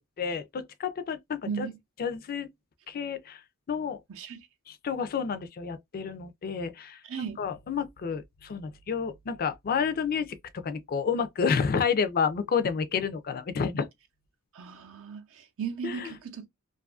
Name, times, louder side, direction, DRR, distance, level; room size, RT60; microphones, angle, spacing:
voice 1, 0.2-1.7 2.0-2.5 2.9-3.4 3.7-4.0 4.7-7.0 7.4-10.4 10.6-13.9 15.8-16.1, left 6 dB, 40° left, 0.4 m, -30 dB
voice 2, 1.5-1.8 4.1-4.5 7.0-7.4 14.5-16.5, right 6 dB, 65° right, 0.5 m, -36 dB
2.6 x 2.3 x 2.3 m
head